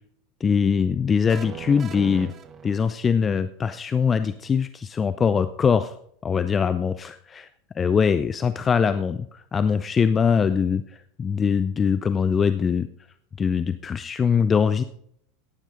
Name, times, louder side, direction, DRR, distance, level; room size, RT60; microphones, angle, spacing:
voice 1, 0.4-2.3 2.6-5.9 6.2-7.5 7.8-12.9 13.4-14.8, left 6 dB, 25° left, 12 dB, 0.5 m, -22 dB
sound 1, 1.3-3.3, right 8 dB, 30° right, 0.9 m, -39 dB
15.0 x 10.0 x 3.7 m, 0.68 s
figure-of-eight pair, 80°, 0 cm